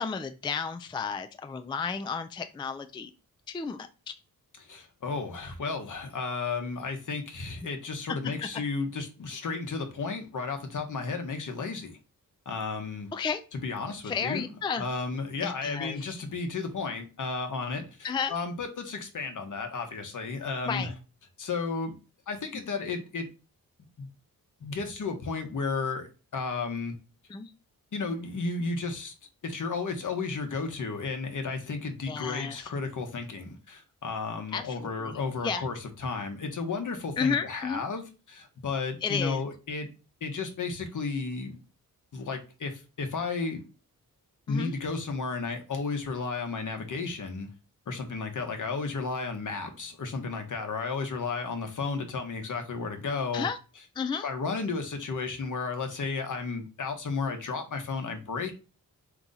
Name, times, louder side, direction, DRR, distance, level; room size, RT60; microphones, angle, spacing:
voice 1, 0.0-3.1 3.5-4.1 8.4-8.5 13.1-13.4 14.0-14.9 15.4-16.1 18.0-18.3 20.7-20.9 27.3-27.5 32.1-32.7 34.5-35.7 37.2-37.9 39.0-39.4 44.5-44.7 53.3-53.6 54.0-54.3, left 6 dB, 15° left, 0.3 m, -32 dB
voice 2, 4.6-12.0 12.5-13.1 13.5-14.5 14.8-20.9 21.4-21.9 22.3-23.3 24.0-24.1 24.6-26.9 27.9-29.1 29.4-39.9 40.2-41.6 42.1-43.6 44.5-47.5 47.9-53.5 54.2-58.5, left 4 dB, 60° left, 1.0 m, -33 dB
4.0 x 2.9 x 3.8 m
wide cardioid pair, 105°, 35 cm